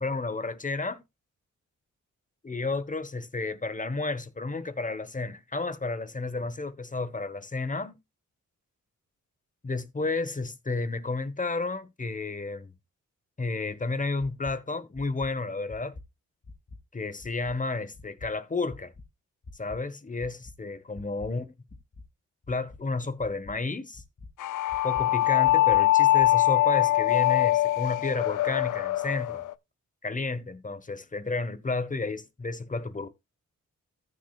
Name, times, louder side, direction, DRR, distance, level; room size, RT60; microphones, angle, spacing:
voice 1, 0.0-1.0 2.4-7.9 9.6-12.7 13.4-16.0 16.9-18.9 19.6-21.5 22.5-24.0 24.8-29.4 30.0-33.1, left 3 dB, 25° left, 1.2 m, -32 dB
sound 1, 14.4-14.5 14.9-15.3 15.7-16.0 16.4-16.8 17.2-17.5 17.9-18.3 18.7-19.0 19.4-19.8 20.2-20.5 20.9-21.3 21.7-22.0 22.4-22.8 23.2-23.5 23.9-24.3 24.7-25.0 25.4-25.8 26.2-26.3, left 3 dB, 45° left, 2.9 m, -45 dB
sound 2, 24.4-29.5, left 15 dB, 80° left, 0.5 m, -23 dB
14.5 x 6.5 x 2.4 m
cardioid pair, 75°, 31 cm